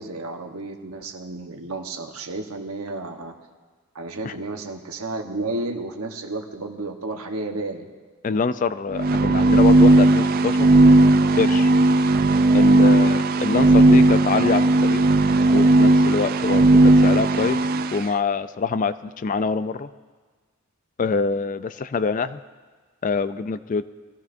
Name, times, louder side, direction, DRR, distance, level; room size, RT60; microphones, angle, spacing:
voice 1, 0.0-3.3 3.9-7.9 12.9-13.2, right 2 dB, 90° right, 4 dB, 1.1 m, -32 dB
voice 2, 8.2-10.7 11.4-11.7 12.5-15.0 15.5-17.6 17.9-19.9 21.0-22.4 23.0-23.9, left 4 dB, 40° left, 14 dB, 0.3 m, -25 dB
sound 1, 8.9-18.0, right 2 dB, 45° right, 0.3 m, -16 dB
21.0 x 14.5 x 2.6 m, 1.5 s
head